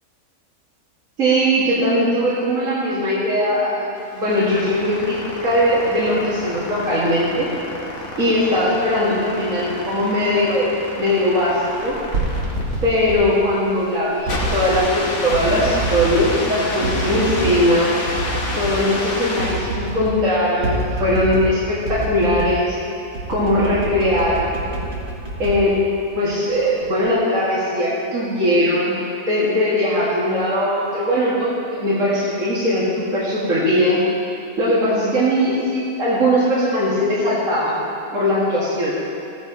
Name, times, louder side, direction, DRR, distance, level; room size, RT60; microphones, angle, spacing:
voice 1, 1.2-3.9 4.1-7.5 8.2-10.7 11.0-12.0 12.8-17.9 18.5-22.8 23.3-24.6 25.4-25.8 26.1-34.0 34.6-37.8 38.1-39.0, equal, 60° right, -11 dB, 2.4 m, -20 dB
sound 1, 4.0-19.9, left 2 dB, 55° left, 1.5 m, -29 dB
sound 2, 11.9-13.2 14.2-14.9 15.3-16.4 16.8-17.6 18.1-18.8 19.1-19.2 19.4-20.2 20.6-21.5 21.9-22.6 23.1-26.2 26.7-27.1, right 2 dB, 75° right, 2.2 m, -26 dB
15.0 x 10.0 x 3.0 m, 2.8 s
omnidirectional pair, 1.6 m